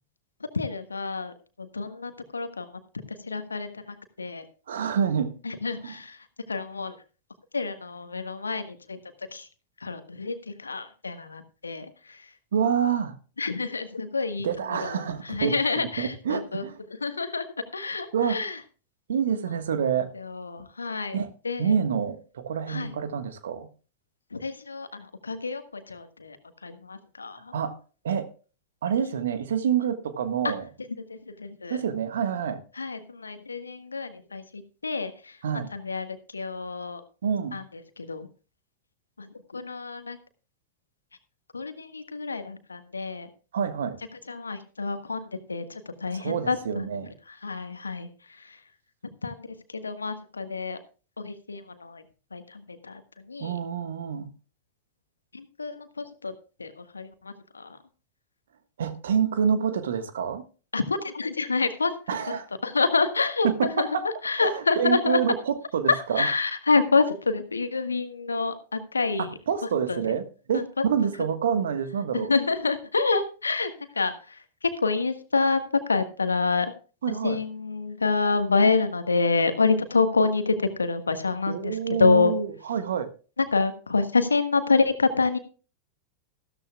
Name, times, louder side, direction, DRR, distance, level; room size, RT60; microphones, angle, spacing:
voice 1, 0.5-2.7 3.1-4.4 5.4-6.2 6.5-6.9 7.5-9.0 9.3-9.5 9.8-12.2 13.4-16.6 17.0-17.4 17.7-18.6 20.1-21.2 21.4-21.7 22.7-22.9 24.3-26.4 26.6-27.5 30.4-30.5 31.1-31.8 32.8-35.4 35.7-37.0 37.5-37.6 38.0-38.3 39.2-39.3 39.5-40.2 41.5-43.3 44.3-46.9 47.3-48.1 48.4-48.6 49.2-50.8 51.2-52.0 52.3-53.0 53.3-53.5 55.3-56.3 56.6-57.8 60.7-61.9 62.6-63.5 63.8-63.9 64.2-65.2 65.9-69.3 69.9-70.0 70.5-70.6 72.3-74.4 74.8-76.7 77.1-82.3 83.4-85.4, left 4 dB, 75° left, 1.4 m, -27 dB
voice 2, 4.7-5.3 5.8-6.0 12.5-13.2 14.4-16.8 18.1-18.4 19.1-20.1 21.1-21.3 21.6-23.7 27.5-27.8 28.0-28.3 28.8-30.7 31.7-32.6 35.4-35.7 37.2-37.6 43.5-44.0 46.1-47.1 53.4-54.3 58.8-60.4 62.1-62.5 63.4-64.0 64.4-66.3 69.2-72.3 77.0-77.4 81.5-83.1, right 7 dB, 65° right, 1.5 m, -27 dB
14.5 x 13.5 x 2.3 m
figure-of-eight pair, 90°, 0 cm